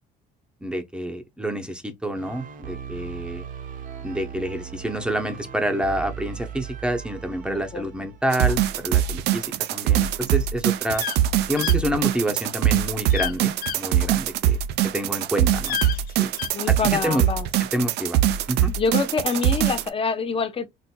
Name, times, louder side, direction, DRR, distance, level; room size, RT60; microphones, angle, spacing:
voice 1, 0.6-3.4 4.0-9.5 9.7-11.0 11.5-14.6 14.8-15.8 16.2-16.3 16.7-17.2 17.7-18.2 18.5-18.7, equal, 5° right, 0.7 m, -28 dB
sound 1, 2.1-8.6, right 7 dB, 55° right, 0.8 m, -38 dB
voice 2, 7.4-8.1 16.5-17.5 18.8-20.7, left 5 dB, 35° left, 0.8 m, -26 dB
sound 2, 8.3-19.9, right 11 dB, 80° right, 0.5 m, -22 dB
sound 3, 10.9-11.2 11.6-11.8 13.1-13.3 13.6-13.8 15.5-16.5, left 10 dB, 60° left, 0.5 m, -29 dB
4.3 x 2.5 x 2.2 m
cardioid pair, 110°, 17 cm